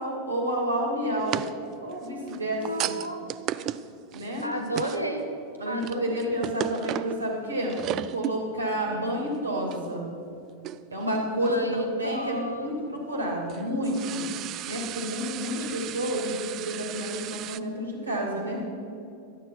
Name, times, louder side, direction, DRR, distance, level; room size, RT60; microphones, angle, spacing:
voice 1, 0.0-1.4 1.8-2.9 4.1-4.5 5.6-7.8 8.1-10.1 10.9-14.2 14.7-18.6, equal, 80° right, -1 dB, 2.7 m, -30 dB
sound 1, 1.2-5.2 5.6-7.3 7.6-8.4 8.7-8.8 9.7-9.9 10.6-11.0 11.4-11.6 13.2-17.6, right 12 dB, 35° right, 0.3 m, -35 dB
voice 2, 2.5-3.2 3.5-3.7 4.4-5.3 5.7-6.3 8.8-9.2 11.3-13.0, equal, 90° left, 4 dB, 1.3 m, -33 dB
12.0 x 9.5 x 5.9 m, 2.7 s
figure-of-eight pair, 90°, 0 cm